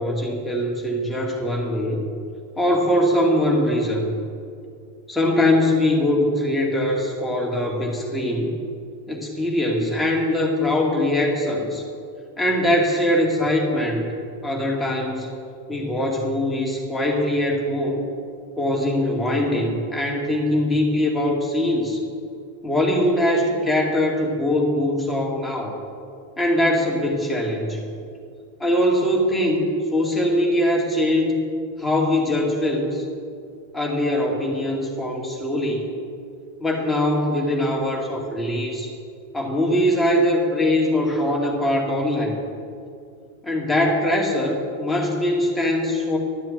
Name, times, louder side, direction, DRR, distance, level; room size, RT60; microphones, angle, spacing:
voice 1, 0.0-2.0 2.6-4.1 5.1-8.6 9.1-11.8 12.4-14.1 14.4-15.3 15.7-18.0 18.6-22.0 22.6-25.8 26.4-27.8 28.6-31.4 31.8-33.1 33.7-35.9 36.6-38.9 39.3-42.4 43.4-46.2, left 1 dB, 5° left, -2 dB, 2.4 m, -22 dB
12.0 x 7.5 x 7.7 m, 2.4 s
figure-of-eight pair, 90°, 0 cm